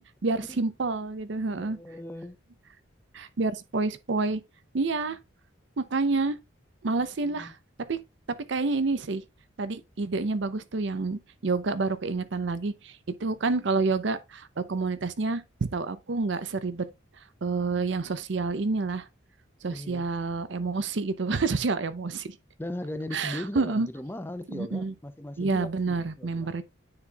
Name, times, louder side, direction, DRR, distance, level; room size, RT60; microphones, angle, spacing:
voice 1, 0.0-1.8 3.1-4.4 4.7-5.2 5.8-6.4 6.8-7.6 7.9-8.0 8.5-9.2 9.6-16.9 17.4-19.1 19.6-22.3 23.1-23.9 24.5-24.9 25.4-26.6, right 3 dB, 65° right, 0.6 m, -28 dB
voice 2, 1.5-2.4 7.2-7.5 19.7-20.1 22.6-26.5, left 1 dB, 10° left, 0.5 m, -38 dB
9.6 x 4.3 x 2.3 m
head